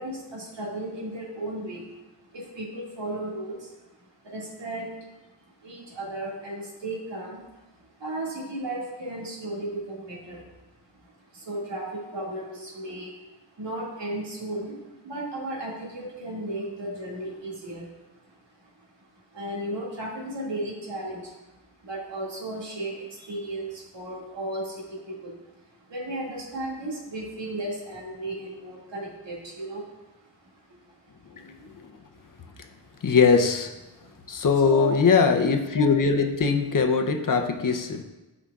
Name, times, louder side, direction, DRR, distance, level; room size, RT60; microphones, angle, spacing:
voice 1, 0.0-1.9 2.3-3.7 4.2-4.9 5.6-7.5 8.0-10.5 11.0-13.1 13.6-14.7 15.0-17.9 18.6-18.7 19.3-21.3 21.8-25.4 25.7-29.9 30.8-31.0 31.3-31.4 31.7-31.8 32.4-32.5 34.0-34.1 34.6-34.9, right 1 dB, 85° right, -4 dB, 2.2 m, -35 dB
voice 2, 31.3-32.0 33.0-33.7 34.3-38.0, left 5 dB, 50° left, 5 dB, 0.7 m, -22 dB
12.5 x 4.9 x 2.4 m, 1.1 s
wide cardioid pair, 115°, 42 cm